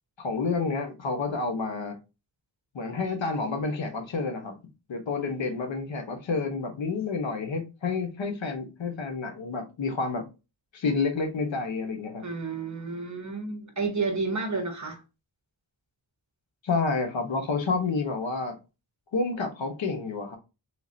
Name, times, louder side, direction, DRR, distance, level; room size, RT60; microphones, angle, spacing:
voice 1, 0.2-2.0 2.7-4.6 4.9-10.2 10.7-12.2 16.6-18.5 19.1-20.4, left 4 dB, 80° left, 1.1 m, -29 dB
voice 2, 12.2-15.0, right 4 dB, 40° right, 1.0 m, -31 dB
3.8 x 2.9 x 2.7 m
wide cardioid pair, 120°, 44 cm